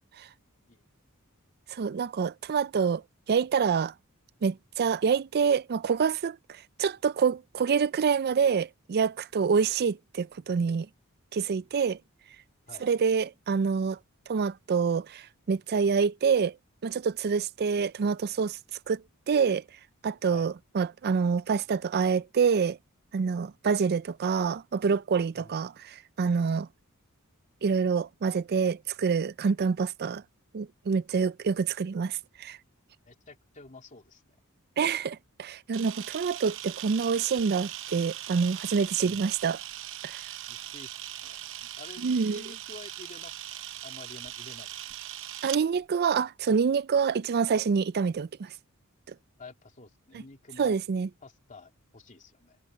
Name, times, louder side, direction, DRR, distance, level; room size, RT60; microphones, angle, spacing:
voice 1, 1.7-3.0 3.3-3.9 4.4-10.9 11.3-12.0 12.8-14.0 14.3-16.6 16.8-18.6 18.9-19.6 20.0-22.8 23.1-26.7 27.6-30.2 30.5-32.6 34.8-39.6 40.0-40.3 42.0-42.4 45.4-48.5 50.1-50.2 50.6-51.1, right 6 dB, 45° right, 0.4 m, -27 dB
voice 2, 33.1-34.4 39.0-39.3 40.5-44.9 49.4-50.8 51.2-52.6, left 3 dB, 35° left, 2.8 m, -50 dB
Camera, 35.7-45.6, right 12 dB, 60° right, 0.8 m, -40 dB
head